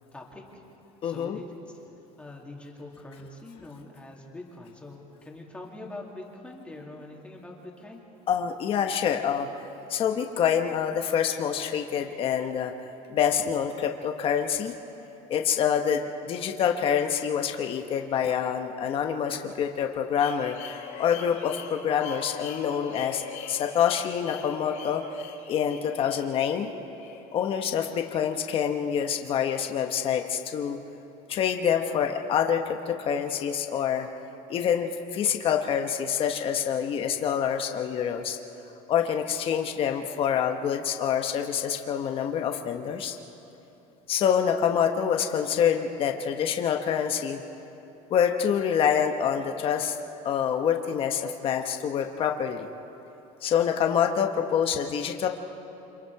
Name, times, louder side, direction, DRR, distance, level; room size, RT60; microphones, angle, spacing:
voice 1, 0.1-0.6 1.0-1.4 2.2-8.0, left 2 dB, 10° left, -2 dB, 2.7 m, -43 dB
voice 2, 1.0-1.4 8.3-9.5 9.9-12.7 13.1-14.7 15.3-23.2 23.5-25.0 25.5-26.7 27.3-30.8 31.3-34.1 34.5-38.4 38.9-43.2 44.1-47.4 48.1-50.0 50.2-52.7 53.4-55.3, left 8 dB, 40° left, 4 dB, 1.2 m, -26 dB
sound 1, 20.2-28.0, left 7 dB, 60° left, 3.6 m, -42 dB
29.5 x 26.0 x 4.8 m, 3.0 s
cardioid pair, 155°, 15 cm